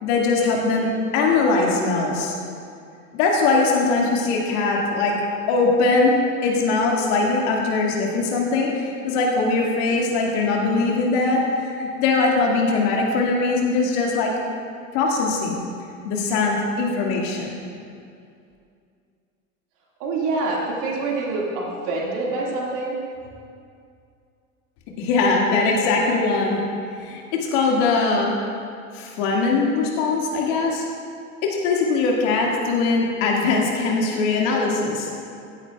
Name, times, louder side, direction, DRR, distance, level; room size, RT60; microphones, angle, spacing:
voice 1, 0.0-2.3 3.1-5.2 5.5-6.2 6.4-11.4 11.8-14.3 14.9-15.6 16.0-17.6 25.0-26.6 27.0-28.3 28.9-30.8 31.4-35.1, left 3 dB, 60° left, -1 dB, 2.1 m, -21 dB
voice 2, 20.0-23.0, right 3 dB, 50° right, -3 dB, 2.1 m, -26 dB
15.0 x 9.0 x 2.4 m, 2.4 s
hypercardioid pair, 80°, 40 cm